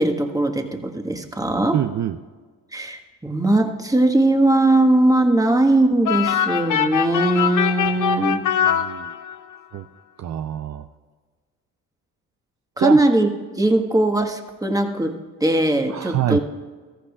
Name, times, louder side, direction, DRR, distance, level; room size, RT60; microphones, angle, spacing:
voice 1, 0.0-1.8 2.7-8.4 12.8-13.3 13.6-15.1 15.4-16.4, right 1 dB, 10° right, 4 dB, 1.4 m, -19 dB
voice 2, 1.7-2.2 8.6-9.1 9.7-9.8 10.2-10.8 12.8-13.0 15.9-16.4, right 12 dB, 50° right, 9 dB, 0.5 m, -25 dB
sound 1, 6.0-9.6, left 8 dB, 55° left, 0.7 m, -22 dB
15.5 x 14.0 x 2.4 m, 1.4 s
supercardioid pair, 55°, 37 cm